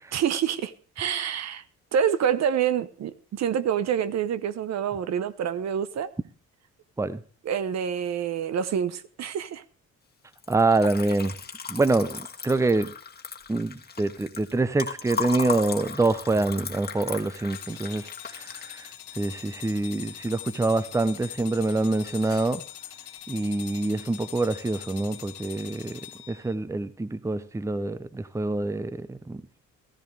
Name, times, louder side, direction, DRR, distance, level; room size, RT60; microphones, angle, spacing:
voice 1, 0.1-1.6 1.9-6.1 7.4-9.6, right 8 dB, 60° right, 0.9 m, -27 dB
Liquid, 10.3-20.5 20.9-21.5 21.8-22.6, left 6 dB, 30° left, 1.6 m, -37 dB
voice 2, 10.5-11.3 11.7-12.9 13.5-18.0 18.3-18.9 19.2-22.6 23.3-26.0 26.3-29.4, right 2 dB, 10° right, 0.7 m, -26 dB
sound 1, 17.5-26.5, left 13 dB, 90° left, 2.4 m, -43 dB
14.0 x 14.0 x 3.3 m
cardioid pair, 90°, 30 cm